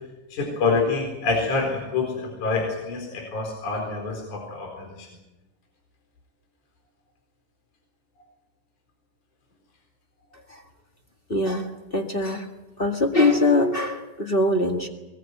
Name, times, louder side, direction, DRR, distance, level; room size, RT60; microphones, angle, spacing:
voice 1, 0.3-5.1, left 4 dB, 60° left, 1 dB, 5.6 m, -26 dB
voice 2, 11.3-12.5 12.8-14.9, left 2 dB, 25° left, 4 dB, 1.2 m, -22 dB
22.0 x 21.0 x 9.2 m, 1.0 s
omnidirectional pair, 3.9 m